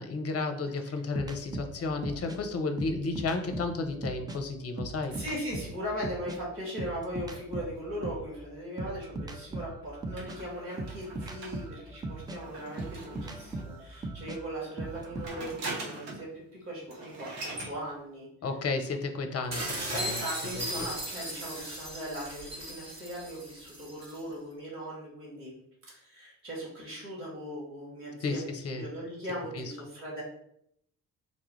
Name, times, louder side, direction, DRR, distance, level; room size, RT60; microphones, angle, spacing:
voice 1, 0.0-5.2 18.4-20.2 20.5-20.9 28.2-28.8 29.5-29.7, left 3 dB, 35° left, 6 dB, 0.7 m, -33 dB
sound 1, 1.1-4.4 4.7-8.3 8.8-15.3, right 2 dB, 10° right, 0.3 m, -39 dB
voice 2, 5.1-18.3 19.9-25.5 25.9-30.2, equal, 90° right, -4 dB, 1.0 m, -39 dB
sound 2, 10.2-13.8 14.8-16.3 16.6-16.7 16.9-17.7, right 2 dB, 65° right, 1.1 m, -42 dB
sound 3, 19.5-24.2, right 1 dB, 35° right, 1.2 m, -37 dB
4.0 x 2.3 x 3.1 m, 0.72 s
hypercardioid pair, 45°, 44 cm